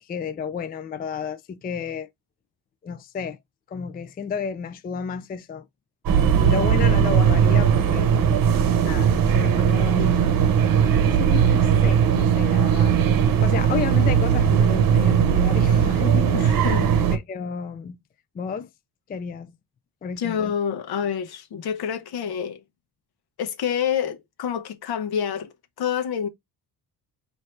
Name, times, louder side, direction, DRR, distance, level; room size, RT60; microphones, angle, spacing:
voice 1, 0.0-2.1 2.8-3.4 3.7-5.7 6.4-8.6 8.8-10.3 11.0-13.0 13.4-16.9 17.1-18.0 18.3-18.7 19.1-19.5 20.0-20.5, left 6 dB, 25° left, 0.4 m, -32 dB
sound 1, 6.1-17.2, right 8 dB, 60° right, 0.9 m, -19 dB
voice 2, 16.3-16.9 20.2-22.6 23.4-25.5 25.8-26.3, left 8 dB, 70° left, 0.9 m, -27 dB
4.3 x 2.8 x 3.2 m
cardioid pair, 120°, 39 cm